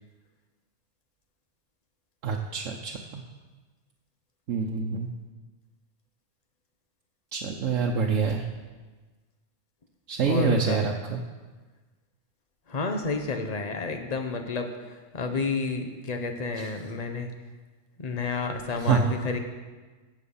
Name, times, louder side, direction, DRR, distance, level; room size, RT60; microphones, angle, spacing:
voice 1, 2.2-3.2 4.5-5.1 7.3-8.4 10.1-11.2 16.6-16.7 18.9-19.0, right 5 dB, 90° right, 0 dB, 1.3 m, -26 dB
voice 2, 10.2-10.8 12.7-17.3 18.0-19.4, left 4 dB, 35° left, 5 dB, 1.1 m, -30 dB
15.5 x 7.3 x 5.6 m, 1.3 s
omnidirectional pair, 1.3 m